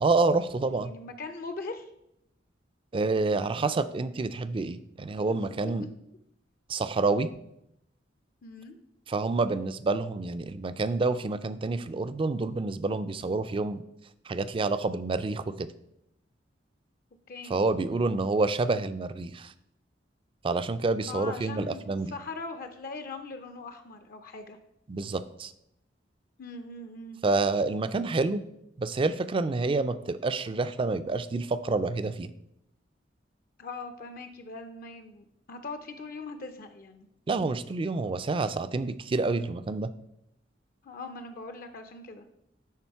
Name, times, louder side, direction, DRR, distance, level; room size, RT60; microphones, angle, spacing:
voice 1, 0.0-0.9 2.9-5.8 6.7-7.3 9.1-13.8 14.3-15.7 17.5-19.5 20.4-22.1 24.9-25.5 27.2-28.4 28.8-32.3 37.3-39.9, right 3 dB, 30° right, 13 dB, 0.4 m, -28 dB
voice 2, 0.7-1.9 5.3-5.4 5.6-5.7 8.4-8.8 17.3-17.5 21.1-24.6 26.4-27.2 33.6-37.1 40.8-42.2, left 3 dB, 50° left, 8 dB, 0.5 m, -41 dB
10.5 x 3.6 x 4.6 m, 0.79 s
head